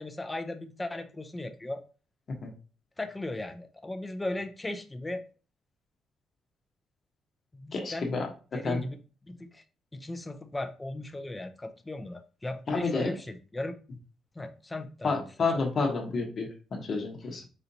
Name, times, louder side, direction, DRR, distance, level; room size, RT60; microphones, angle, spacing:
voice 1, 0.0-1.8 3.0-5.2 7.5-8.1 8.5-9.0 9.2-9.6 9.9-13.8 14.4-15.2 15.5-15.6 17.3-17.5, left 2 dB, 15° left, 7 dB, 0.6 m, -37 dB
voice 2, 7.7-8.3 8.6-8.8 12.7-13.1 15.0-17.4, left 4 dB, 50° left, 1 dB, 1.1 m, -29 dB
4.2 x 4.0 x 2.8 m, 0.36 s
cardioid pair, 90°, 0 cm